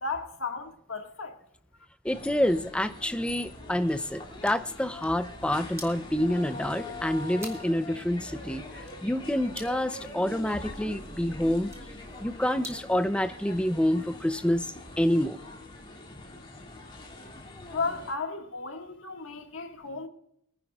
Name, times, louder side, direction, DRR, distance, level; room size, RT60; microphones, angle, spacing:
voice 1, 0.0-1.4 17.7-20.1, left 4 dB, 70° left, 1.7 m, -34 dB
sound 1, 2.0-18.1, left 2 dB, 25° left, 2.1 m, -43 dB
voice 2, 2.0-11.7 12.2-15.4, left 1 dB, 5° left, 0.4 m, -28 dB
sound 2, 4.2-13.0, right 2 dB, 15° right, 1.7 m, -51 dB
23.5 x 10.0 x 2.3 m
head